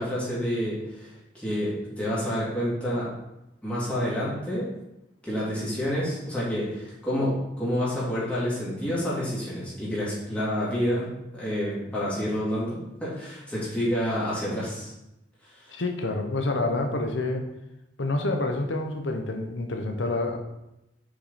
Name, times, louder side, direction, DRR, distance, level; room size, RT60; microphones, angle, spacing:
voice 1, 0.0-3.1 3.6-4.7 5.2-14.9 15.6-15.8, equal, 5° left, -9 dB, 2.7 m, -29 dB
voice 2, 15.7-17.4 18.0-20.4, left 2 dB, 75° left, 4 dB, 0.9 m, -28 dB
6.3 x 5.2 x 4.2 m, 0.91 s
head